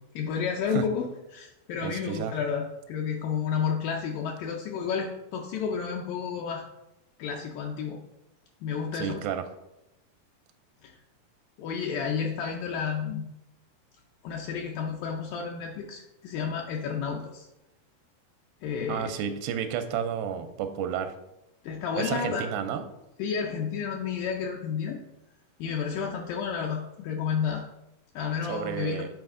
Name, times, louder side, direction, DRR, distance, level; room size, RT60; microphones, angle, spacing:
voice 1, 0.2-1.1 1.3-6.7 7.2-8.0 8.6-9.2 10.8-11.0 11.6-13.2 14.2-17.5 18.6-19.2 21.6-22.5 23.2-25.0 25.6-27.6 28.2-29.1, left 6 dB, 80° left, 1 dB, 2.1 m, -31 dB
voice 2, 1.8-2.3 8.9-9.4 18.9-21.1 22.0-22.9 28.5-29.1, right 8 dB, 85° right, 8 dB, 2.3 m, -31 dB
8.0 x 4.2 x 3.6 m, 0.90 s
omnidirectional pair, 4.2 m